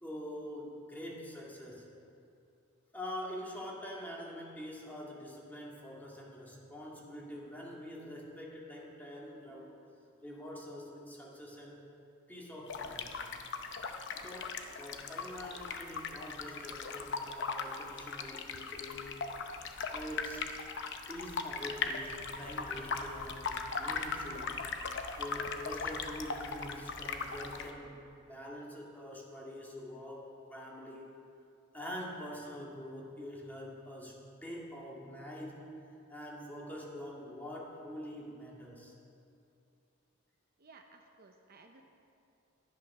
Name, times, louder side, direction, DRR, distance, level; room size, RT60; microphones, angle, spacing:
voice 1, 0.0-1.9 2.9-9.8 10.2-11.9 12.3-13.1 14.1-19.2 19.9-20.5 21.1-24.7 25.2-31.1 31.7-35.7 36.1-38.9, equal, 10° left, -3 dB, 2.0 m, -45 dB
sound 1, 12.7-27.7, left 5 dB, 60° left, 0.8 m, -39 dB
voice 2, 40.6-41.8, right 3 dB, 45° right, 4 dB, 0.8 m, -57 dB
11.0 x 11.0 x 6.0 m, 2.6 s
head